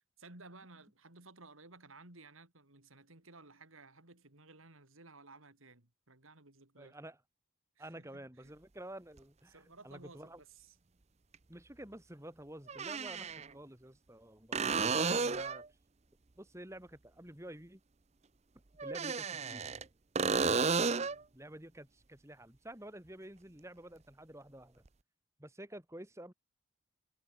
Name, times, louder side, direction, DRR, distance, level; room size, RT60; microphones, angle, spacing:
voice 1, 0.2-7.0 7.8-8.5 9.5-10.8 20.9-21.3, right 3 dB, 80° right, 4.4 m, -57 dB
voice 2, 6.8-7.2 7.8-10.4 11.5-15.7 16.4-17.8 18.8-19.7 21.3-24.8 25.4-26.3, right 1 dB, 15° right, 2.4 m, -50 dB
sound 1, 9.2-9.3 11.3-11.4 12.7-13.5 14.5-15.7 18.8-19.8 20.2-21.2 24.9-25.0, right 4 dB, 30° right, 0.7 m, -32 dB
head